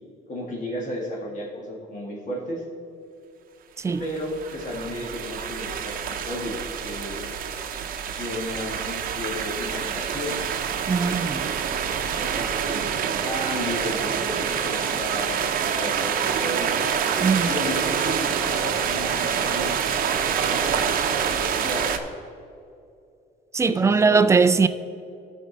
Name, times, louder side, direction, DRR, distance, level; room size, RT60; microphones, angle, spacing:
voice 1, 0.3-2.6 4.0-6.6 6.8-7.2 8.1-10.4 12.2-16.8 17.4-19.8 20.2-21.9 23.6-24.5, left 1 dB, 50° left, 2.0 m, -34 dB
Water fountain restaurant, 4.0-22.0, right 7 dB, 55° right, 0.7 m, -26 dB
voice 2, 10.9-11.4 17.2-17.5 23.5-24.7, right 5 dB, 15° right, 0.3 m, -19 dB
13.5 x 5.3 x 4.0 m
cardioid pair, 110°, 17 cm